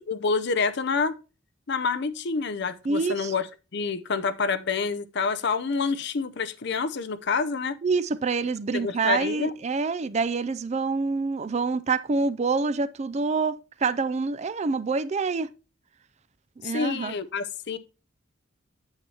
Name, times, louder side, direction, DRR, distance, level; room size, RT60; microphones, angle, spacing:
voice 1, 0.1-1.2 1.7-3.5 3.7-7.8 8.7-9.6 16.6-17.8, left 4 dB, 60° left, 0.6 m, -27 dB
voice 2, 2.8-3.3 7.8-15.5 16.6-17.1, right 4 dB, 35° right, 0.4 m, -26 dB
8.9 x 7.0 x 2.8 m
head